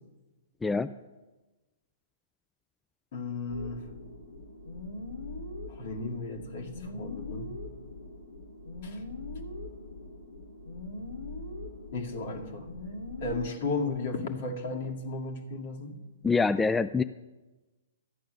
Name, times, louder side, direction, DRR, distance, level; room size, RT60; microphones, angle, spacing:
voice 1, 0.6-0.9 16.2-17.0, left 4 dB, 10° left, 12 dB, 0.3 m, -25 dB
voice 2, 3.1-3.9 5.7-7.6 8.8-9.0 11.9-12.7 13.2-16.0, left 3 dB, 55° left, 2 dB, 2.1 m, -34 dB
sound 1, 3.5-13.5, left 2 dB, 80° left, 2.6 m, -41 dB
13.5 x 8.7 x 6.4 m, 1.1 s
hypercardioid pair, 120°, 0 cm